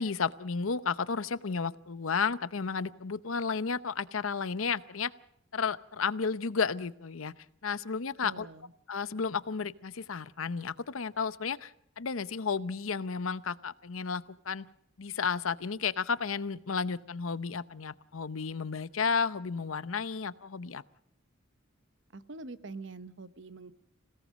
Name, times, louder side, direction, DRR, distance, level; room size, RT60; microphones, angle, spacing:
voice 1, 0.0-5.1 5.5-7.3 7.6-8.5 8.9-14.7 15.0-20.8, left 5 dB, 85° left, 16 dB, 0.8 m, -32 dB
voice 2, 8.2-8.7 22.1-23.7, right 3 dB, 60° right, 13 dB, 1.0 m, -44 dB
26.5 x 17.5 x 6.4 m, 0.69 s
head